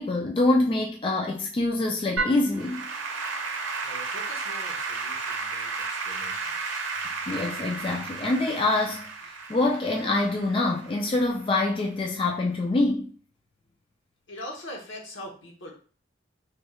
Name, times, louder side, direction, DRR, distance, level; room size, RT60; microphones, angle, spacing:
voice 1, 0.0-2.9 7.3-9.1 9.5-13.1, left 2 dB, 25° left, 0.3 m, -25 dB
Applause / Keyboard (musical), 2.2-11.5, right 4 dB, 85° right, 0.6 m, -33 dB
voice 2, 3.8-6.9 14.3-15.7, left 1 dB, 80° left, 0.9 m, -42 dB
3.2 x 3.0 x 2.3 m
head